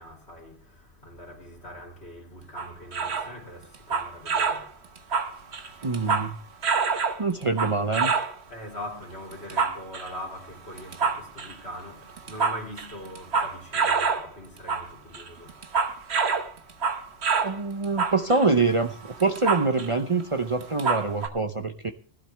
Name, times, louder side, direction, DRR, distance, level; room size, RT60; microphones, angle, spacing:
voice 1, 0.0-4.7 8.5-15.5, equal, 65° left, 3.6 m, -42 dB
sound 1, 2.6-3.3 3.7-4.7 5.0-6.3 6.6-8.3 9.3-10.1 10.8-11.5 12.1-14.3 14.6-14.9 15.1-17.6 17.8-19.9 20.2-20.3 20.6-21.3, right 5 dB, 70° right, 1.4 m, -26 dB
voice 2, 5.8-6.4 7.2-8.1 17.4-21.9, right 3 dB, 35° right, 0.7 m, -25 dB
18.5 x 12.0 x 3.4 m
omnidirectional pair, 1.2 m